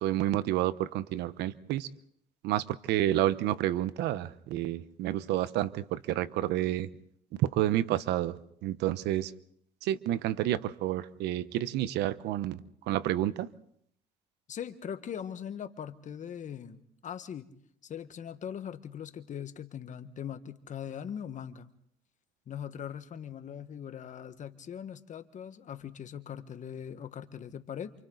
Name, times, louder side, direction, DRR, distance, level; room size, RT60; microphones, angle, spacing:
voice 1, 0.0-1.9 2.4-6.9 7.4-9.3 9.8-12.6 12.9-13.5, right 13 dB, 85° right, 0.9 m, -29 dB
voice 2, 14.5-17.5 17.8-21.7 22.5-27.9, left 8 dB, 45° left, 1.5 m, -41 dB
28.5 x 27.0 x 4.0 m
cardioid pair, 110°, 17 cm